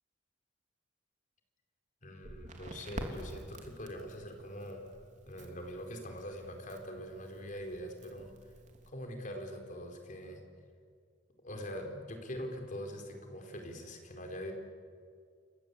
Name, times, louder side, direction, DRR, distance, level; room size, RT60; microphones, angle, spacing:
voice 1, 2.0-4.9 5.2-8.3 8.9-10.4 11.4-14.5, equal, 45° left, 4 dB, 4.8 m, -43 dB
Crackle, 2.2-8.9, right 1 dB, 45° right, 3.5 m, -48 dB
29.0 x 24.0 x 8.6 m, 2.2 s
head